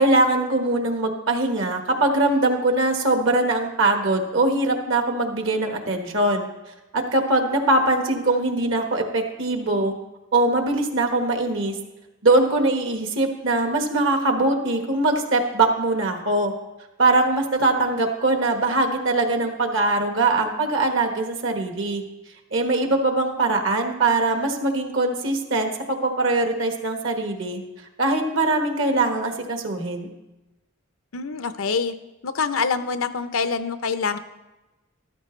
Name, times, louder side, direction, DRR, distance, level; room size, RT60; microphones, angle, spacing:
voice 1, 0.0-9.9 10.3-11.8 12.2-16.5 17.0-22.0 22.5-27.6 28.0-30.1, right 2 dB, 65° right, 4 dB, 1.5 m, -22 dB
voice 2, 31.1-31.9 32.2-34.2, left 5 dB, 90° left, 10 dB, 0.7 m, -25 dB
13.5 x 12.5 x 3.2 m, 1.0 s
head